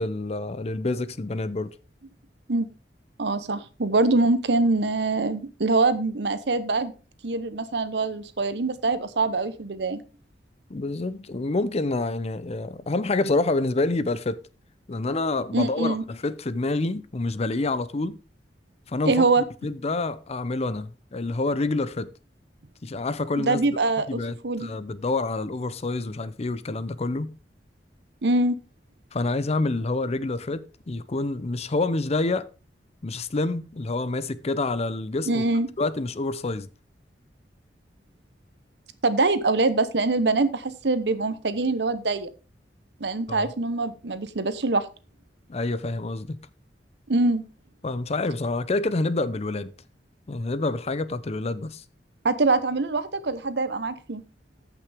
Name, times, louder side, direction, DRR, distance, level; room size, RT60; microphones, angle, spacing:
voice 1, 0.0-1.8 10.7-14.4 14.9-18.2 18.9-19.3 19.6-22.1 22.8-23.6 24.1-27.3 29.1-32.5 33.0-35.4 35.8-36.7 43.3-43.5 45.5-46.4 47.8-49.7 50.3-51.8, left 2 dB, 35° left, 0.6 m, -27 dB
voice 2, 3.2-6.9 7.2-10.0 15.5-16.0 19.1-19.4 23.4-24.7 28.2-28.6 35.3-35.7 39.0-42.3 43.0-44.9 47.1-47.4 52.2-54.2, right 3 dB, 70° right, 1.0 m, -24 dB
14.0 x 5.9 x 3.5 m
head